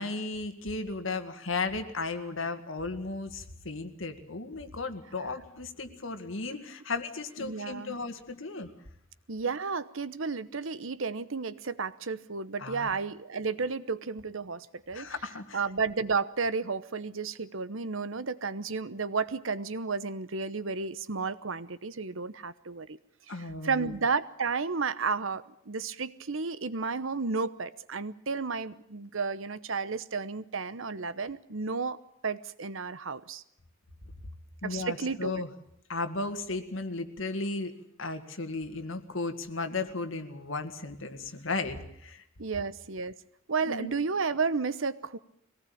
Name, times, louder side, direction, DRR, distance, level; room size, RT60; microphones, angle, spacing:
voice 1, 0.0-8.7 12.6-12.9 14.9-15.6 23.3-23.9 34.6-35.5 35.9-42.2 43.6-43.9, left 3 dB, 70° left, 7 dB, 2.0 m, -35 dB
voice 2, 7.4-8.0 9.3-15.1 15.5-23.0 23.6-33.4 34.6-35.3 42.4-43.1 43.5-45.2, right 4 dB, 75° right, 15 dB, 1.0 m, -32 dB
23.0 x 18.5 x 8.6 m, 0.74 s
head